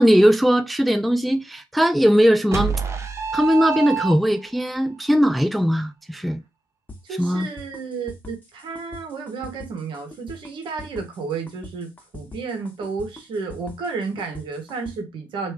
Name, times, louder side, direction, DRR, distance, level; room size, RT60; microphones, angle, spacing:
voice 1, 0.0-2.8 3.3-6.4 7.2-7.5, equal, ahead, 0.3 m, -19 dB
sound 1, 2.5-4.6, right 7 dB, 30° right, 0.8 m, -26 dB
sound 2, 6.9-15.0, left 2 dB, 20° left, 1.4 m, -42 dB
voice 2, 7.0-15.5, right 4 dB, 60° right, 1.2 m, -32 dB
3.1 x 2.7 x 3.6 m
supercardioid pair, 70°, 10 cm